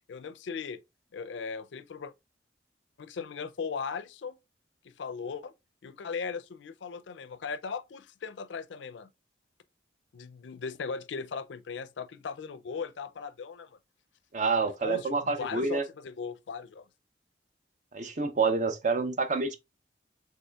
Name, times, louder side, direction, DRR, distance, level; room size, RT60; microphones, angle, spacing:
voice 1, 0.1-0.8 1.1-2.1 3.0-4.4 4.8-5.5 5.8-9.1 10.1-13.8 14.8-16.9, left 5 dB, 80° left, 0.4 m, -38 dB
voice 2, 14.3-15.8 17.9-19.6, right 4 dB, 40° right, 0.5 m, -28 dB
5.4 x 3.8 x 2.3 m
head